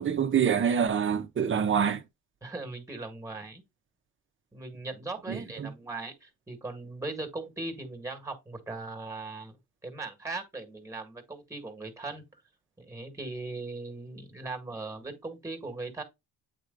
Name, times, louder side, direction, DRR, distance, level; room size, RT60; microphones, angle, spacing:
voice 1, 0.0-2.0 5.3-5.7, right 7 dB, 35° right, 1.1 m, -26 dB
voice 2, 2.4-3.6 4.5-9.5 9.8-12.3 12.8-16.0, right 3 dB, 10° right, 1.9 m, -39 dB
8.7 x 3.2 x 3.9 m
cardioid pair, 120°, 36 cm